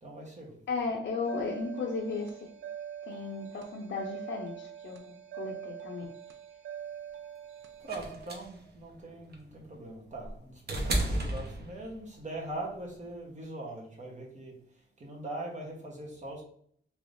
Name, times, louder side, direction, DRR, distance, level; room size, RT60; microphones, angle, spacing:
voice 1, 0.0-0.5 7.8-14.5 15.0-16.4, right 1 dB, 35° right, -1 dB, 1.0 m, -41 dB
voice 2, 0.7-2.5 3.1-6.1, left 4 dB, 65° left, 0 dB, 0.5 m, -35 dB
sound 1, 1.2-7.9, right 9 dB, 75° right, 0.4 m, -43 dB
sound 2, 7.9-12.2 13.4-13.5, right 1 dB, 55° right, 0.8 m, -33 dB
3.3 x 3.0 x 2.5 m, 0.63 s
wide cardioid pair, 140°, 20 cm